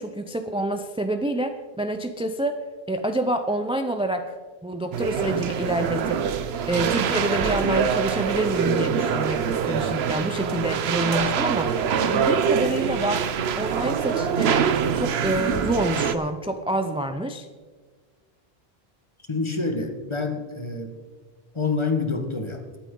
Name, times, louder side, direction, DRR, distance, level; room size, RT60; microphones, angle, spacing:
voice 1, 0.0-2.6 2.9-4.4 4.6-6.2 6.7-11.7 12.0-13.2 13.6-14.6 14.9-17.5, right 1 dB, 5° right, 7 dB, 0.4 m, -27 dB
sound 1, 4.9-16.2, right 7 dB, 90° right, 1.0 m, -24 dB
voice 2, 19.3-20.9 21.5-22.6, left 4 dB, 30° left, 4 dB, 1.5 m, -27 dB
21.5 x 8.8 x 3.8 m, 1.4 s
omnidirectional pair, 1.0 m